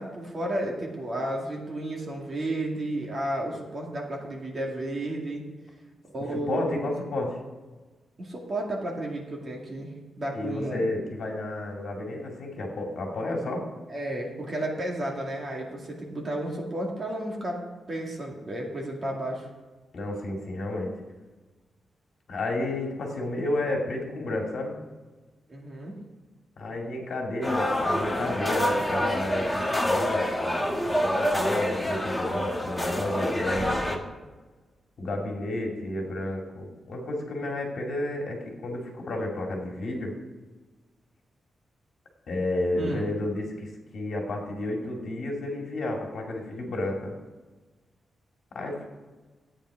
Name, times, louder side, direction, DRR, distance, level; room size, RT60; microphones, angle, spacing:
voice 1, 0.0-5.5 6.1-6.8 8.2-9.9 10.2-10.8 13.9-17.6 17.9-19.5 25.5-25.9 42.8-43.1, right 1 dB, 30° right, -1 dB, 2.3 m, -32 dB
voice 2, 6.3-7.4 10.3-13.7 19.9-20.9 22.3-24.8 26.6-34.0 35.0-40.1 42.3-47.1 48.5-48.9, left 1 dB, 55° left, 0 dB, 2.4 m, -31 dB
sound 1, 27.4-34.0, left 1 dB, 5° left, 1.2 m, -27 dB
13.5 x 8.9 x 5.0 m, 1.3 s
wide cardioid pair, 165°, 0 cm